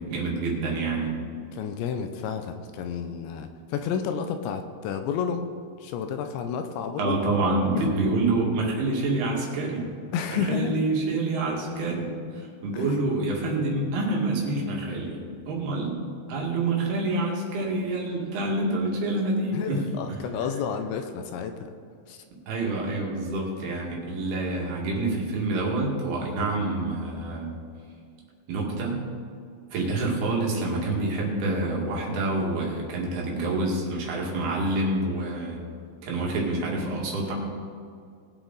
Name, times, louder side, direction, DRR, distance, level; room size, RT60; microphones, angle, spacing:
voice 1, 0.1-1.1 7.0-9.9 10.3-16.0 16.3-19.8 20.1-20.2 22.5-27.5 28.5-29.0 29.7-35.6 36.0-37.3, right 2 dB, 60° right, -2 dB, 3.8 m, -27 dB
voice 2, 1.5-5.5 5.8-7.2 7.7-7.9 10.1-10.8 12.7-13.0 19.5-21.7 22.1-22.2, left 7 dB, 80° left, 7 dB, 2.8 m, -31 dB
20.5 x 8.2 x 4.0 m, 2.2 s
omnidirectional pair, 5.4 m